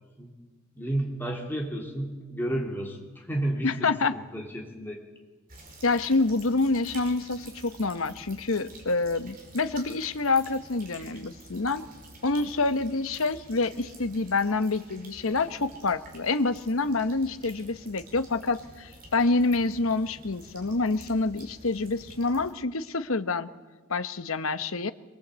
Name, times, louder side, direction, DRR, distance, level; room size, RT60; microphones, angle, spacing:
voice 1, 0.8-5.0, right 1 dB, 10° left, 0 dB, 3.4 m, -32 dB
voice 2, 3.6-4.2 5.8-11.8 12.2-23.5 23.9-24.9, left 3 dB, 70° left, 11 dB, 1.1 m, -27 dB
sound 1, 5.5-22.5, right 2 dB, 40° right, 5.3 m, -49 dB
24.0 x 22.5 x 8.2 m, 1.3 s
head